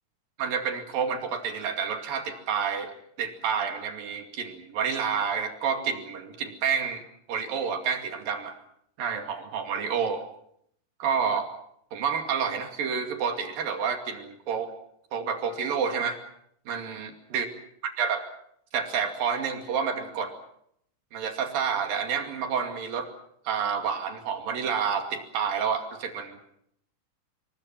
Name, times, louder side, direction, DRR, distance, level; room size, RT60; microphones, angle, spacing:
voice 1, 0.4-2.9 3.2-7.0 7.3-8.6 9.0-10.2 11.0-11.5 11.9-14.7 15.1-16.2 16.7-17.5 18.0-18.3 18.7-20.3 21.1-23.1 23.5-26.4, right 6 dB, 90° right, 5 dB, 4.2 m, -29 dB
27.5 x 22.5 x 5.9 m, 0.71 s
omnidirectional pair, 3.9 m